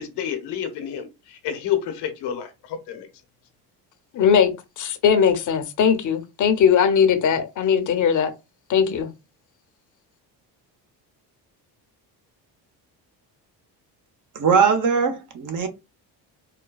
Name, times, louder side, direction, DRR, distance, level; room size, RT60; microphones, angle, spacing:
voice 1, 0.0-3.1, left 9 dB, 75° left, 0.9 m, -29 dB
voice 2, 4.1-8.3 8.7-9.1, left 7 dB, 45° left, 0.7 m, -19 dB
voice 3, 14.3-15.7, right 6 dB, 50° right, 0.9 m, -20 dB
4.1 x 2.2 x 2.3 m
cardioid pair, 90°, 41 cm